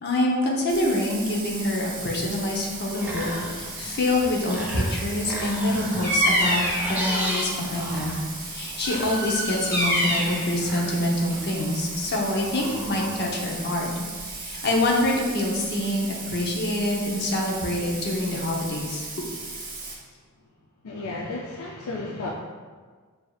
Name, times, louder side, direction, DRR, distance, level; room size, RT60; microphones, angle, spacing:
voice 1, 0.0-19.1, left 1 dB, 50° left, -2 dB, 0.8 m, -26 dB
Bathtub (filling or washing), 0.7-19.9, right 3 dB, 40° right, 0.8 m, -37 dB
sound 1, 2.7-13.5, equal, 10° right, 0.6 m, -36 dB
Bird vocalization bird call bird song, 6.0-7.0 8.8-10.4, equal, 15° left, 1.3 m, -25 dB
voice 2, 20.8-22.3, left 2 dB, 70° left, -2 dB, 0.4 m, -33 dB
6.5 x 2.8 x 2.3 m, 1.5 s
head